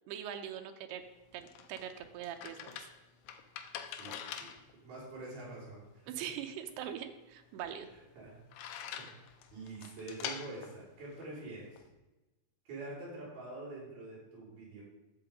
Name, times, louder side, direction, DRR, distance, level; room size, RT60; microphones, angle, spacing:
voice 1, 0.1-1.0 1.3-2.9 6.1-7.9, right 9 dB, 85° right, 6 dB, 2.8 m, -42 dB
sound 1, 1.0-11.9, left 9 dB, 80° left, 2.7 m, -47 dB
voice 2, 3.9-4.5 4.8-6.3 8.2-11.8 12.7-14.8, right 2 dB, 65° right, -5 dB, 5.7 m, -46 dB
11.0 x 7.5 x 5.1 m, 1.1 s
omnidirectional pair, 4.6 m